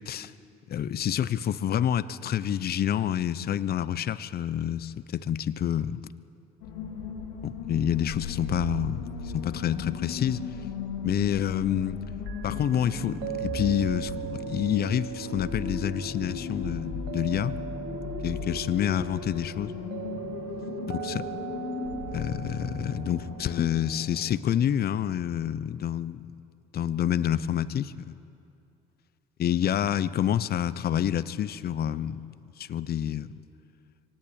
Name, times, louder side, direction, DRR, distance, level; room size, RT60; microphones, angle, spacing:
voice 1, 0.7-6.0 7.4-10.4 11.0-12.0 12.4-17.5 18.2-19.7 20.9-21.3 22.1-26.3 26.7-28.2 29.4-32.2 32.6-33.3, left 10 dB, 55° left, 15 dB, 0.9 m, -28 dB
sound 1, 6.6-24.9, left 4 dB, 90° left, 3.2 m, -37 dB
sound 2, 12.3-24.3, right 11 dB, 75° right, 0.9 m, -40 dB
24.5 x 18.0 x 8.9 m, 2.5 s
hypercardioid pair, 60°, 20 cm